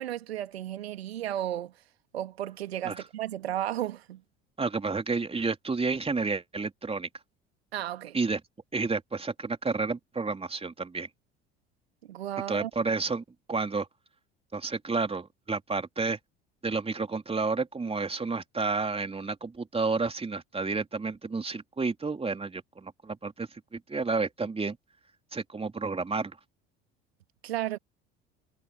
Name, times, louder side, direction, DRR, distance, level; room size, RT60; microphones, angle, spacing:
voice 1, 0.0-1.7 2.1-4.2 7.7-8.2 12.1-12.7 27.4-27.8, right 12 dB, 75° right, 2.3 m, -33 dB
voice 2, 4.6-7.1 8.1-8.4 8.7-11.1 12.5-13.9 14.5-16.2 16.6-24.8 25.3-26.3, right 4 dB, 20° right, 3.5 m, -30 dB
figure-of-eight pair, 60°, 31 cm